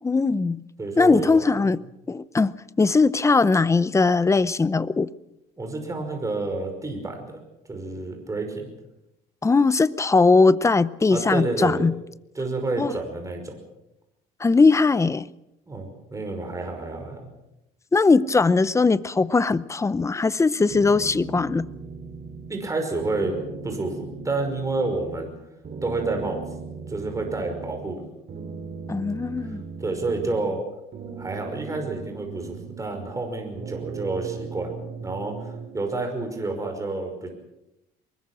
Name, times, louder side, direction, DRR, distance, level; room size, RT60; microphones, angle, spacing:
voice 1, 0.0-0.6 1.0-5.1 9.4-12.0 12.8-12.9 14.4-15.3 17.9-21.7 28.9-29.6, left 4 dB, 15° left, 0.7 m, -20 dB
voice 2, 0.8-1.5 5.6-7.4 7.7-8.7 11.1-11.9 12.4-13.6 15.7-17.3 22.5-23.4 23.6-25.3 25.8-26.4 26.9-28.1 29.4-30.6 31.2-34.7 35.0-37.3, right 3 dB, 20° right, 5.5 m, -29 dB
sound 1, 20.7-22.7 23.0-25.3 25.6-28.0 28.3-30.6 30.9-33.3 33.6-35.9, right 5 dB, 45° right, 3.7 m, -38 dB
24.0 x 21.0 x 6.3 m
cardioid pair, 110°, 17 cm